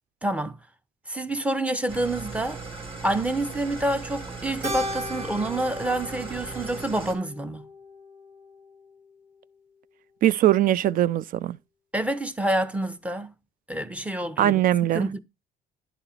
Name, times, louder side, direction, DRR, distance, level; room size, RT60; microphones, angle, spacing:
voice 1, 0.2-0.6 1.1-2.6 3.0-7.6 11.9-13.4 13.7-14.6 14.9-15.2, right 1 dB, 10° right, 0.6 m, -27 dB
Engine starting / Idling, 1.9-7.1, right 4 dB, 35° right, 2.7 m, -38 dB
Keyboard (musical), 4.6-9.2, equal, 85° right, 3.0 m, -37 dB
voice 2, 10.2-11.6 14.4-15.1, right 12 dB, 55° right, 0.4 m, -21 dB
11.0 x 4.0 x 4.1 m
cardioid pair, 110°, 17 cm